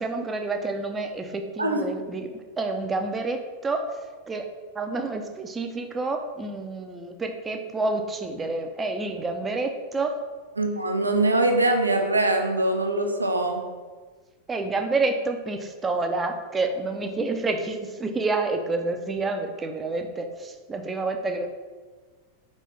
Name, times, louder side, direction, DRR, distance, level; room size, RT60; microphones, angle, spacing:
voice 1, 0.0-4.0 4.3-4.5 4.7-10.2 14.5-21.5, right 3 dB, 15° right, 6 dB, 0.4 m, -28 dB
voice 2, 10.6-13.7, right 2 dB, 80° right, 4 dB, 0.4 m, -23 dB
4.4 x 3.2 x 3.1 m, 1.4 s
figure-of-eight pair, 90°, 0 cm